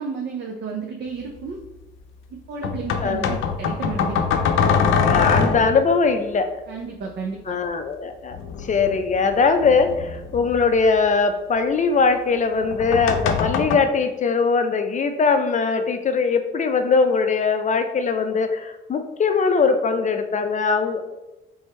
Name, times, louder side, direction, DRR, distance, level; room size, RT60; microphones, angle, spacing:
voice 1, 0.0-1.6 2.3-4.2 6.7-7.6, right 5 dB, 60° right, 1 dB, 0.6 m, -32 dB
sound 1, 1.2-1.3 2.6-5.9 8.3-11.0 12.6-13.8, left 6 dB, 85° left, 0.5 m, -23 dB
voice 2, 3.0-3.4 5.0-6.5 7.5-21.0, left 4 dB, 40° left, 7 dB, 0.5 m, -21 dB
3.5 x 3.5 x 4.2 m, 1.0 s
cardioid pair, 90°, 20 cm